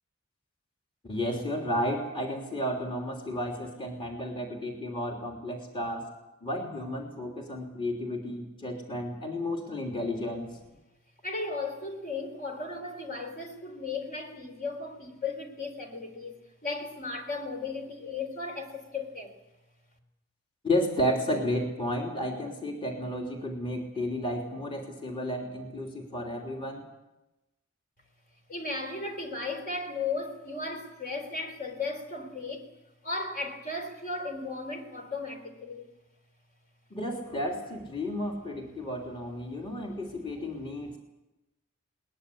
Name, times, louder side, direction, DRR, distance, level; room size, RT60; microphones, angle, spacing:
voice 1, 1.0-6.1 6.4-10.5 20.6-26.8 36.9-41.0, left 1 dB, 25° left, 3.2 m, -32 dB
voice 2, 11.2-19.3 28.5-32.7 33.0-35.9 39.5-39.9 40.8-41.0, left 3 dB, 45° left, 3.8 m, -36 dB
21.5 x 20.0 x 8.6 m
head